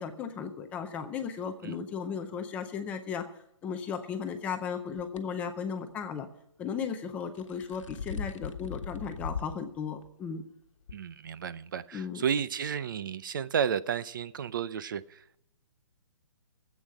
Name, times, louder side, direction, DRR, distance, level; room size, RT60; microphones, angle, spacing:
voice 1, 0.0-3.3 3.6-6.3 6.6-10.4 11.9-12.2, left 6 dB, 10° left, 7 dB, 0.5 m, -35 dB
sound 1, 5.0-5.2 7.2-9.6 10.0-10.1 10.9-11.0, left 6 dB, 75° left, 1.3 m, -38 dB
voice 2, 10.9-15.4, right 7 dB, 40° right, 16 dB, 0.5 m, -32 dB
14.0 x 8.3 x 7.5 m, 0.81 s
hypercardioid pair, 165°, 16 cm